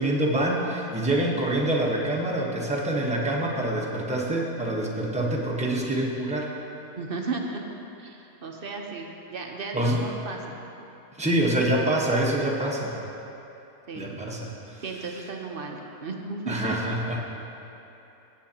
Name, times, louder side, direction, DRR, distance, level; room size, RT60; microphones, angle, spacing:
voice 1, 0.0-6.5 9.7-10.0 11.2-13.0 14.0-14.8 16.5-17.2, right 1 dB, 5° right, -3 dB, 0.9 m, -26 dB
voice 2, 6.9-7.6 8.0-10.5 13.9-14.2 14.8-16.6, right 4 dB, 45° right, 1 dB, 0.8 m, -35 dB
16.5 x 8.2 x 2.9 m, 2.9 s
omnidirectional pair, 1.6 m